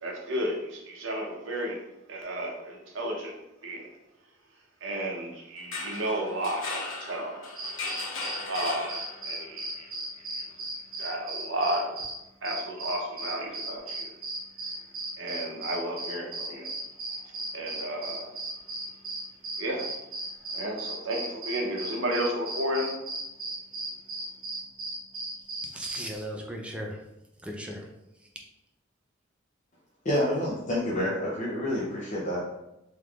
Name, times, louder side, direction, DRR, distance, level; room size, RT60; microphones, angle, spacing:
voice 1, 0.0-3.9 4.8-7.5 8.5-9.9 10.3-10.5 11.0-12.0 12.4-14.2 15.2-16.7 17.2-18.3 19.6-20.0 20.5-23.0, right 1 dB, 75° right, 0.7 m, -33 dB
sound 1, 5.6-9.4, left 3 dB, 85° left, 0.8 m, -37 dB
sound 2, 7.6-12.2 12.4-26.2, right 2 dB, 45° right, 0.9 m, -36 dB
voice 2, 25.6-27.0 27.4-27.9 28.2-28.3, equal, 5° right, 0.4 m, -37 dB
voice 3, 30.0-32.5, left 1 dB, 40° left, 0.6 m, -28 dB
3.4 x 3.0 x 2.3 m
head